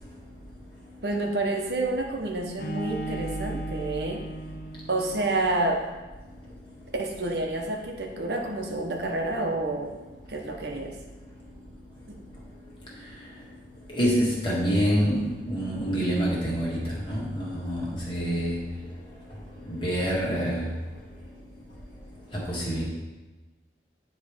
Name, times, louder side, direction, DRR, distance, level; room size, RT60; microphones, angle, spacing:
voice 1, 1.0-4.2 4.9-5.8 7.0-9.9 10.3-10.9 12.1-12.2, right 2 dB, 65° right, 1 dB, 0.9 m, -29 dB
Bowed string instrument, 2.6-5.5, right 2 dB, 50° left, 0.6 m, -37 dB
voice 2, 13.9-18.6 19.7-20.6 22.5-22.8, equal, 30° left, -5 dB, 1.9 m, -26 dB
9.4 x 3.2 x 4.9 m, 1.2 s
head